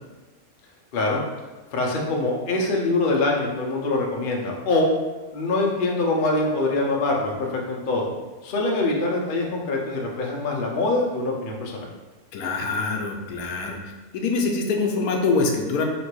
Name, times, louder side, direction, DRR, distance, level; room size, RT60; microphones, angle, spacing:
voice 1, 1.7-4.9 5.3-8.1 8.4-11.9, left 2 dB, 55° left, -1 dB, 0.6 m, -24 dB
voice 2, 12.3-13.8 14.1-15.9, left 4 dB, 75° left, 2 dB, 1.1 m, -24 dB
3.1 x 3.0 x 4.6 m, 1.2 s
omnidirectional pair, 1.6 m